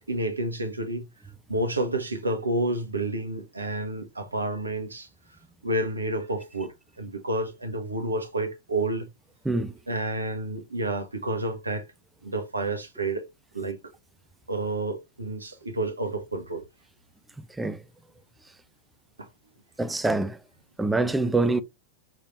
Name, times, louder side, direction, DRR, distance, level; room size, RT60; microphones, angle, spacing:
voice 1, 0.1-1.1 1.5-5.1 5.6-9.1 9.9-11.9 12.2-13.3 13.5-13.8 14.5-16.6 19.2-19.3, right 2 dB, 80° right, 1.1 m, -30 dB
voice 2, 19.8-20.4 20.8-21.6, right 2 dB, 5° right, 0.6 m, -25 dB
6.2 x 3.3 x 2.6 m
figure-of-eight pair, 90°, 0 cm